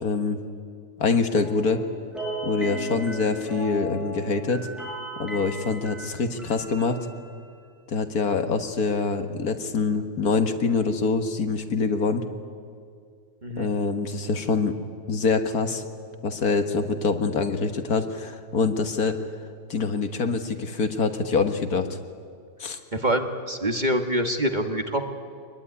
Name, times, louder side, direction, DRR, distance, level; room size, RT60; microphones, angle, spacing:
voice 1, 0.0-0.4 1.0-1.8 2.4-4.7 5.2-7.0 7.9-12.2 13.6-14.8 15.1-15.8 16.2-19.2 19.7-22.0 22.6-22.8, left 4 dB, 60° left, 7 dB, 1.8 m, -25 dB
sound 1, 1.3-7.3, right 1 dB, ahead, 7.4 m, -36 dB
voice 2, 22.9-25.2, right 1 dB, 25° right, 5 dB, 1.5 m, -25 dB
24.5 x 21.0 x 9.8 m, 2.2 s
omnidirectional pair, 1.8 m